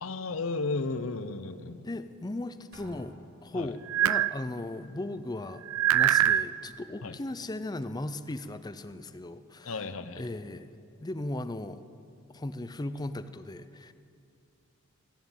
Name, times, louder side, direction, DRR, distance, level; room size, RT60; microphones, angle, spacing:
voice 1, 0.0-1.9 3.5-3.7 7.0-7.1 9.6-10.3, left 3 dB, 70° left, 12 dB, 0.8 m, -34 dB
voice 2, 1.8-3.2 3.4-5.6 5.9-9.8 10.2-10.7 11.0-11.8 12.3-13.9, left 2 dB, 20° left, 12 dB, 0.5 m, -37 dB
Drum, 2.7-3.9, right 1 dB, 55° right, 2.0 m, -53 dB
sound 1, 3.9-4.3 5.6-6.5, right 11 dB, 80° right, 0.4 m, -23 dB
14.5 x 9.6 x 8.9 m, 2.6 s
head